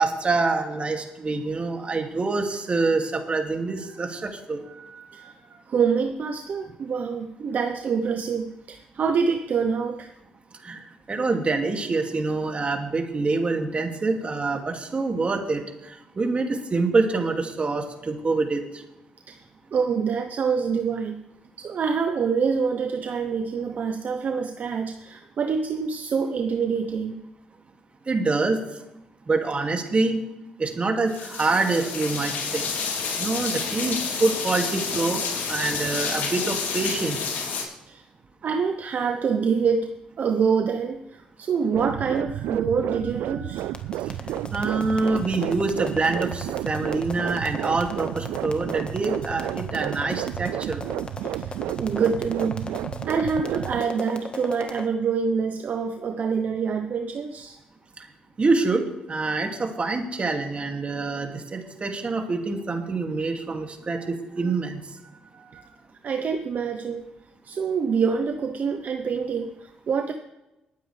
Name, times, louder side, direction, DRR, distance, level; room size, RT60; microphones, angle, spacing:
voice 1, 0.0-4.6 10.6-18.8 28.1-28.6 29.3-30.2 30.6-32.7 33.2-37.2 44.5-50.8 58.4-64.8, right 3 dB, 40° right, 3 dB, 2.5 m, -26 dB
voice 2, 4.7-10.1 19.3-19.4 19.7-21.2 21.6-27.2 35.1-35.2 37.9-38.0 38.4-39.9 40.2-43.8 51.2-52.7 53.1-57.6 65.3-65.8 66.0-67.1 67.4-70.1, right 6 dB, 60° right, 6 dB, 0.9 m, -26 dB
sound 1, 31.1-37.6, left 5 dB, 70° left, 3.2 m, -29 dB
sound 2, 41.7-53.9, right 13 dB, 80° right, 0.3 m, -32 dB
sound 3, 43.6-54.8, left 3 dB, 30° left, 1.5 m, -37 dB
20.5 x 9.2 x 3.4 m, 0.95 s
supercardioid pair, 55°, 3 cm